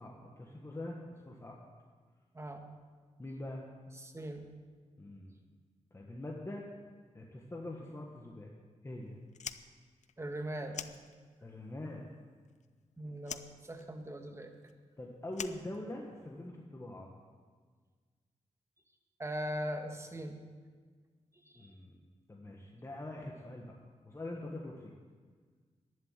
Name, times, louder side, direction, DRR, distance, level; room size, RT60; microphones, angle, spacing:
voice 1, 0.0-1.6 3.2-3.6 5.0-5.3 5.9-6.6 7.1-8.5 8.8-9.2 11.4-12.0 13.1-13.2 15.0-17.1 21.5-24.9, left 1 dB, 25° left, -1 dB, 1.5 m, -44 dB
voice 2, 2.3-2.7 3.9-4.5 10.2-10.9 13.0-14.5 19.2-20.4 21.3-21.7, right 1 dB, 20° right, 4 dB, 1.6 m, -40 dB
Fire, 9.3-11.6 11.9-12.9 13.2-16.4, left 8 dB, 75° left, 0.6 m, -46 dB
11.5 x 10.5 x 7.5 m, 1.6 s
wide cardioid pair, 95°, 12 cm